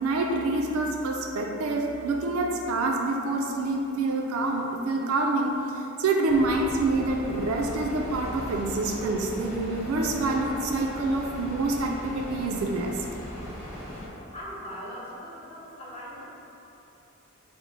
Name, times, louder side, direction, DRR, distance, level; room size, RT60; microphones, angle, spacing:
voice 1, 0.0-13.0, right 2 dB, 80° right, 1 dB, 0.3 m, -27 dB
sound 1, 6.3-14.1, equal, 85° left, 1.2 m, -39 dB
voice 2, 14.3-16.3, equal, 30° left, -6 dB, 0.6 m, -40 dB
4.4 x 2.0 x 3.8 m, 2.9 s
head